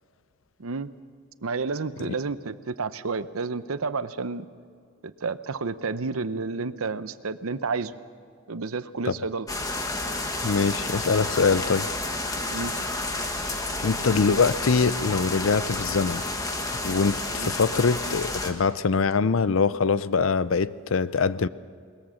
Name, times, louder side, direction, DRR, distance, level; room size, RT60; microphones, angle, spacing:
voice 1, 0.6-0.9 1.4-4.5 5.0-7.9 8.5-9.5 12.5-12.7 17.3-17.5, right 4 dB, 85° right, 13 dB, 0.8 m, -30 dB
sound 1, 9.5-18.5, left 2 dB, 15° left, 1.4 m, -30 dB
voice 2, 10.4-11.9 13.8-16.2 16.8-21.5, left 5 dB, 70° left, 16 dB, 0.6 m, -23 dB
21.5 x 20.0 x 6.4 m, 2.2 s
head